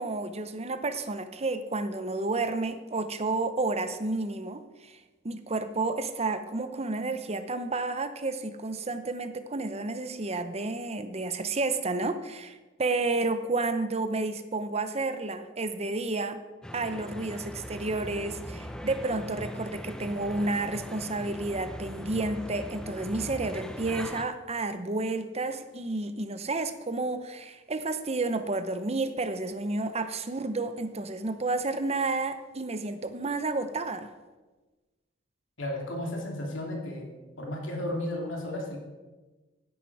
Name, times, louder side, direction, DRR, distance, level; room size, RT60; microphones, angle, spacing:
voice 1, 0.0-5.0 5.2-16.4 16.7-34.1, right 3 dB, 35° right, 10 dB, 0.9 m, -31 dB
sound 1, 16.6-24.2, equal, 5° left, 0.8 m, -40 dB
voice 2, 35.6-37.1 37.4-38.8, left 1 dB, 75° left, 0 dB, 3.0 m, -33 dB
15.0 x 10.5 x 4.8 m, 1.2 s
head